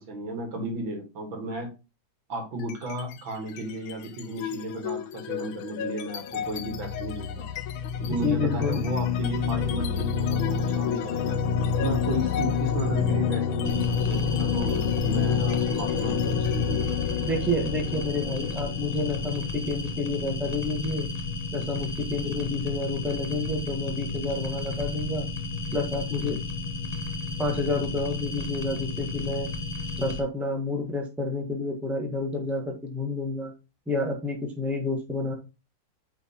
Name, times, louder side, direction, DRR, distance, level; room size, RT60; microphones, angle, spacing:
voice 1, 0.0-1.7 2.3-7.5 8.0-11.4 11.8-17.1, equal, 75° right, 3 dB, 2.5 m, -33 dB
sound 1, 2.6-3.1 3.5-20.1, left 7 dB, 90° left, 1.5 m, -28 dB
voice 2, 8.2-8.8 17.2-21.1 21.5-25.3 25.7-26.4 27.4-29.5 30.0-33.5 33.9-35.3, left 2 dB, ahead, 1 dB, 1.1 m, -29 dB
sound 2, 13.6-30.2, left 3 dB, 40° left, 0.5 m, -33 dB
9.0 x 4.4 x 2.9 m, 0.29 s
omnidirectional pair, 2.2 m